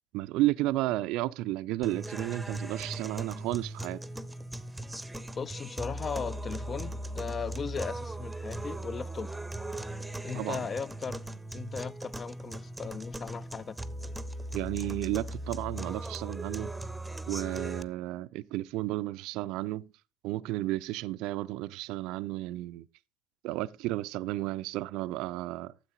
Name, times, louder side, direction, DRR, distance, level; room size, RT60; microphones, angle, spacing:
voice 1, 0.1-4.0 10.3-10.7 14.5-16.7 17.3-19.9 20.2-22.9 23.4-25.7, right 17 dB, 55° right, 0.4 m, -32 dB
sound 1, 1.8-17.8, right 1 dB, 5° right, 0.8 m, -38 dB
voice 2, 5.4-9.3 10.2-11.2 11.5-13.8, left 6 dB, 30° left, 0.4 m, -37 dB
13.0 x 7.7 x 3.8 m
figure-of-eight pair, 65°, 0 cm